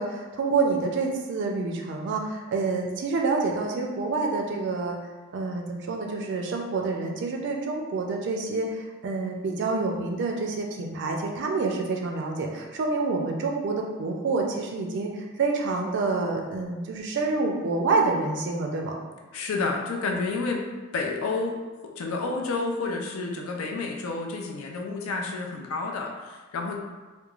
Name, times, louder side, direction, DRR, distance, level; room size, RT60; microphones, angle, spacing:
voice 1, 0.0-5.0 5.3-18.9, right 3 dB, 60° right, 2 dB, 0.4 m, -27 dB
voice 2, 19.3-20.7 20.9-21.6 21.8-26.8, left 3 dB, 80° left, 1 dB, 0.4 m, -30 dB
2.9 x 2.2 x 2.4 m, 1.3 s
head